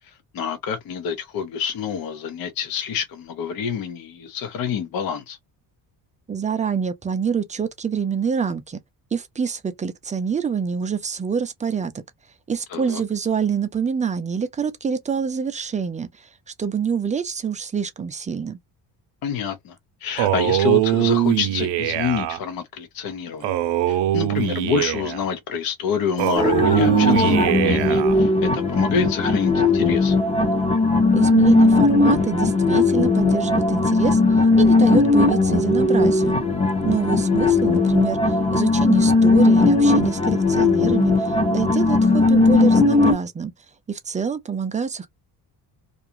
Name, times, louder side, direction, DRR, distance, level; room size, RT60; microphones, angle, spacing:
voice 1, 0.3-5.4 12.7-13.0 19.2-19.7 20.0-23.5 23.9-30.2, left 7 dB, 55° left, 0.7 m, -27 dB
voice 2, 6.3-8.8 9.1-12.0 12.5-16.3 16.6-18.6 31.1-34.2 34.6-36.4 36.8-43.5 43.9-45.1, right 6 dB, 20° right, 0.3 m, -26 dB
Male speech man speaking, 20.2-22.4 23.4-25.3 26.2-28.2, right 13 dB, 75° right, 0.6 m, -21 dB
sound 1, 26.4-43.1, left 3 dB, 15° left, 0.7 m, -18 dB
2.5 x 2.3 x 2.8 m
cardioid pair, 125°, 42 cm